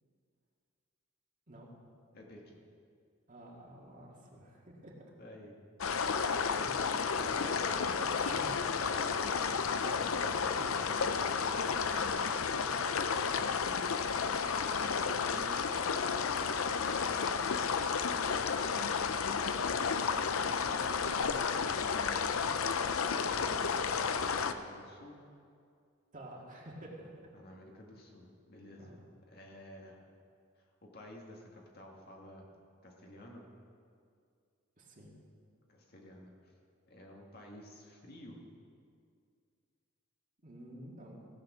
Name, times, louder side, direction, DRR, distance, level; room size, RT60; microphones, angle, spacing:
voice 1, 2.1-2.6 4.1-4.2 5.2-5.5 7.5-9.7 11.2-11.8 21.5-22.6 23.6-25.2 27.3-29.0 29.3-30.0 30.6-32.5 32.8-33.5 35.7-36.5 36.9-38.4, left 1 dB, 50° left, -1 dB, 1.9 m, -52 dB
voice 2, 3.3-5.1 6.5-7.7 8.2-8.6 9.8-14.6 14.9-15.9 16.2-17.3 19.8-20.1 20.7-21.7 23.2-23.5 26.1-27.3 28.8-29.0 34.8-35.2 40.4-41.3, right 1 dB, 40° right, -2 dB, 2.0 m, -51 dB
sound 1, 5.8-24.5, left 6 dB, 85° left, 0.6 m, -32 dB
16.0 x 7.8 x 6.2 m, 2.3 s
head